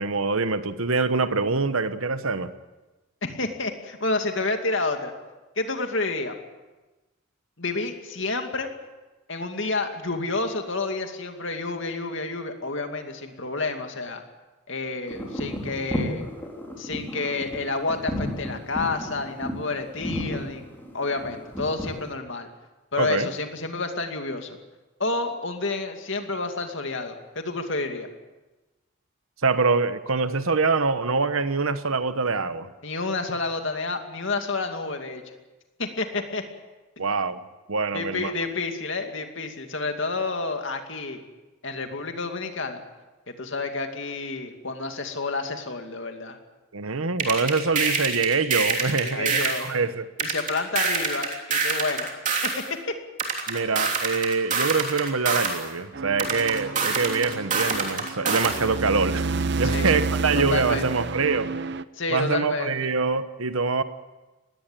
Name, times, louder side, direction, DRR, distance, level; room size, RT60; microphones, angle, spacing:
voice 1, 0.0-2.5 23.0-23.3 29.4-32.7 37.0-37.4 37.7-38.3 46.7-50.1 53.5-61.5 62.1-63.8, right 4 dB, 75° right, 1.1 m, -25 dB
voice 2, 3.2-5.1 5.6-6.4 7.6-8.7 9.3-14.2 14.7-16.3 16.8-20.6 20.9-22.5 22.9-24.6 25.0-28.1 32.8-35.2 35.8-36.4 37.9-41.2 41.6-42.8 43.4-46.4 49.0-49.7 50.2-52.1 52.4-52.6 59.6-60.0 60.3-60.8 62.0-62.7, left 3 dB, 60° left, 2.4 m, -29 dB
sound 1, 15.1-22.1, left 1 dB, 10° left, 4.6 m, -33 dB
sound 2, 47.2-49.7 50.2-52.6 53.2-55.6 56.2-58.6, right 5 dB, 35° right, 3.1 m, -26 dB
sound 3, 55.9-61.8, right 4 dB, 50° right, 0.7 m, -30 dB
20.0 x 17.0 x 9.1 m
head